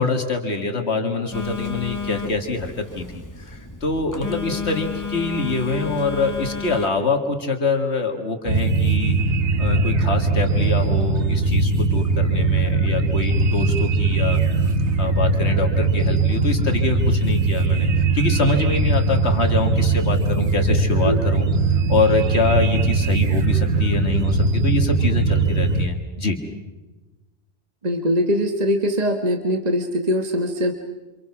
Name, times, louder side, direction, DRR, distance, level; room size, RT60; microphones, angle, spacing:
voice 1, 0.0-3.1 3.4-9.1 9.6-14.4 15.0-26.4, left 3 dB, 80° left, 5 dB, 2.3 m, -25 dB
Telephone, 1.3-6.9, left 6 dB, 15° left, 1.3 m, -31 dB
sound 1, 8.5-25.9, right 3 dB, 85° right, 1.6 m, -20 dB
voice 2, 27.8-30.7, equal, 40° right, 5 dB, 1.6 m, -22 dB
28.0 x 27.0 x 6.1 m, 1.2 s
omnidirectional pair, 1.1 m